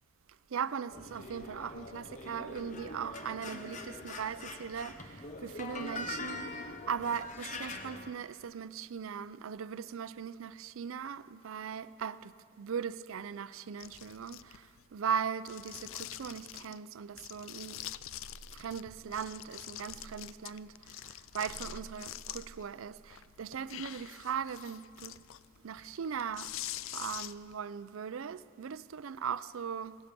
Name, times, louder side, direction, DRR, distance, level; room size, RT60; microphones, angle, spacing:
voice 1, 0.5-17.8 18.5-25.2 25.6-26.5 26.9-30.0, right 7 dB, 75° right, 0.4 m, -39 dB
sound 1, 0.9-8.1, left 2 dB, 35° left, 0.8 m, -43 dB
sound 2, 13.8-14.8 15.4-16.8 17.2-18.8 19.1-22.6 23.0-27.6, left 13 dB, 70° left, 0.4 m, -45 dB
16.5 x 16.5 x 5.2 m
head